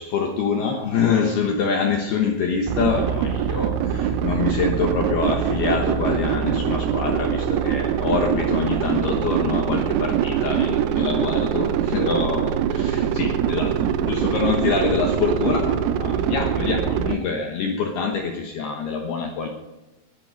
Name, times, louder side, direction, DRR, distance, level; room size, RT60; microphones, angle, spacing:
voice 1, 0.0-19.5, left 5 dB, 65° left, 3 dB, 2.7 m, -25 dB
sound 1, 2.7-17.2, right 9 dB, 90° right, 3.7 m, -23 dB
21.5 x 11.0 x 5.2 m, 1.0 s
omnidirectional pair, 5.9 m